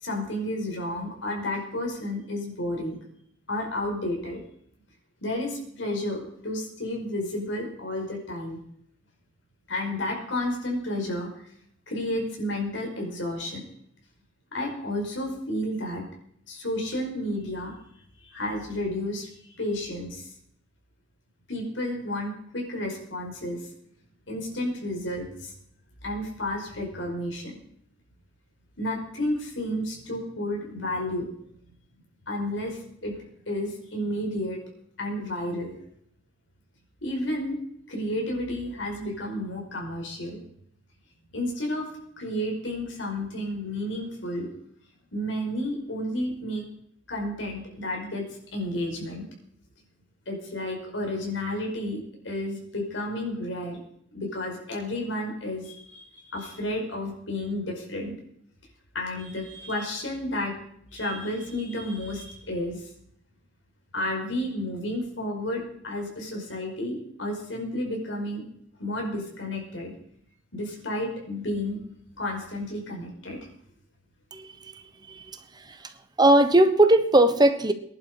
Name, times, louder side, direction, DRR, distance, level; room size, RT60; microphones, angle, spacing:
voice 1, 0.0-2.9 3.5-4.4 5.2-8.6 9.7-11.4 11.9-13.6 14.5-16.0 16.5-17.7 18.2-20.3 21.5-23.6 24.3-25.5 26.0-27.5 28.8-31.3 32.3-33.1 33.5-34.6 35.0-35.8 37.0-37.6 37.9-40.4 41.3-41.9 42.2-44.5 45.1-46.6 47.1-48.3 48.5-49.3 50.3-53.8 54.1-58.1 58.9-60.5 60.9-62.9 63.9-68.4 68.8-69.9 70.5-71.8 72.2-73.5, left 1 dB, 90° left, 1 dB, 5.1 m, -31 dB
voice 2, 74.3-74.7 75.1-75.9 76.2-77.7, right 1 dB, 20° right, 9 dB, 1.1 m, -20 dB
20.0 x 11.0 x 5.0 m, 0.69 s
head